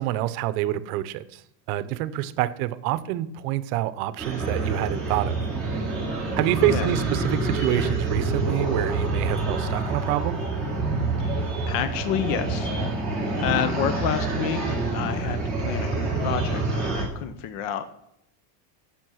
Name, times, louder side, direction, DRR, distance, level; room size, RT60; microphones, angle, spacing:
voice 1, 0.0-1.4 1.7-5.4 6.4-10.5, right 14 dB, 65° right, 15 dB, 0.8 m, -27 dB
sound 1, 4.2-17.0, right 3 dB, ahead, 3.7 m, -27 dB
voice 2, 11.7-12.7 13.4-17.9, left 9 dB, 45° left, 11 dB, 0.8 m, -29 dB
10.5 x 7.1 x 6.2 m, 0.77 s
cardioid pair, 170°, 47 cm